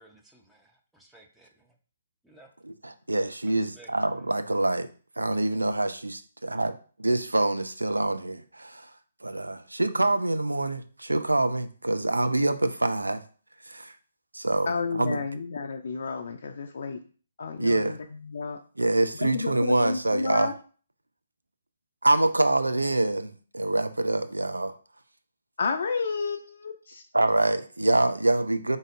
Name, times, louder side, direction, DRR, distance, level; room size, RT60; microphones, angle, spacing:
voice 1, 0.0-1.7 2.2-2.5 3.5-3.9, right 2 dB, 5° right, 0.5 m, -56 dB
voice 2, 2.6-4.9 5.2-8.9 9.2-13.2 13.7-13.9 14.3-15.2 17.6-18.0 18.8-20.5 22.0-24.8 27.1-28.8, right 2 dB, 80° right, 0.4 m, -25 dB
voice 3, 14.7-17.0 17.4-18.6 19.2-20.5 25.6-27.0, left 4 dB, 55° left, 0.4 m, -31 dB
4.0 x 3.9 x 2.5 m
figure-of-eight pair, 135°, 0 cm